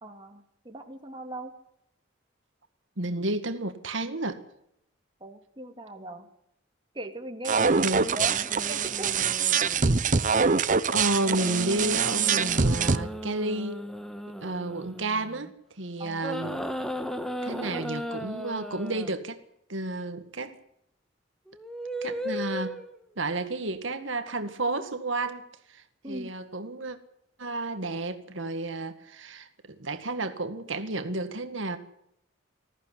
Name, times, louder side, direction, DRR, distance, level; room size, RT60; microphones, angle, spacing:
voice 1, 0.0-1.5 5.2-6.3 6.9-9.2 16.0-16.3 26.0-26.3, right 1 dB, 25° right, 3 dB, 2.4 m, -39 dB
voice 2, 3.0-4.4 7.8-8.0 10.9-13.8 14.4-16.6 17.4-19.4 19.7-20.6 22.0-22.8 23.2-27.0 27.4-31.8, right 2 dB, 70° right, 7 dB, 1.9 m, -31 dB
sound 1, 7.4-13.0, right 5 dB, 40° right, 0.9 m, -24 dB
sound 2, 8.0-10.2 11.2-15.5 16.2-19.1 21.5-23.0 24.3-24.5, equal, ahead, 1.5 m, -36 dB
20.5 x 14.5 x 10.0 m, 0.76 s
head